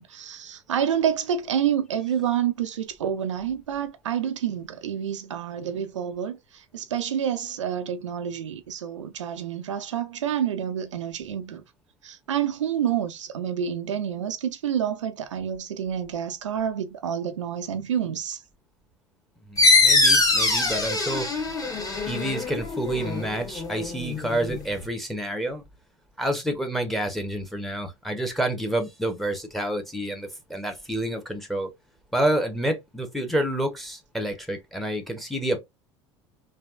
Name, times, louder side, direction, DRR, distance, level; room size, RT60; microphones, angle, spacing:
voice 1, 0.0-11.6 12.0-18.4, right 9 dB, 75° right, 0.4 m, -28 dB
voice 2, 19.5-21.3 22.1-25.6 26.2-31.7 32.1-35.6, right 1 dB, ahead, 0.8 m, -28 dB
sound 1, 19.6-24.8, left 3 dB, 20° left, 1.1 m, -23 dB
3.2 x 2.3 x 2.4 m
figure-of-eight pair, 70°, 16 cm